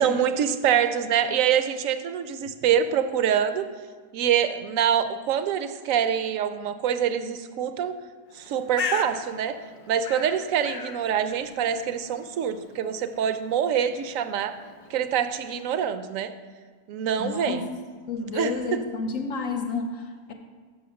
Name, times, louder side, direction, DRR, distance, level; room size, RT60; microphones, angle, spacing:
voice 1, 0.0-3.7 4.1-8.0 8.3-9.6 9.9-14.6 14.9-16.3 16.9-17.7 18.3-18.5, right 8 dB, 70° right, 10 dB, 0.9 m, -25 dB
Bird, 8.3-15.9, left 5 dB, 90° left, 0.4 m, -39 dB
voice 2, 17.2-17.6 18.1-20.3, left 4 dB, 70° left, 4 dB, 1.0 m, -30 dB
7.0 x 6.2 x 6.3 m, 1.5 s
omnidirectional pair, 1.6 m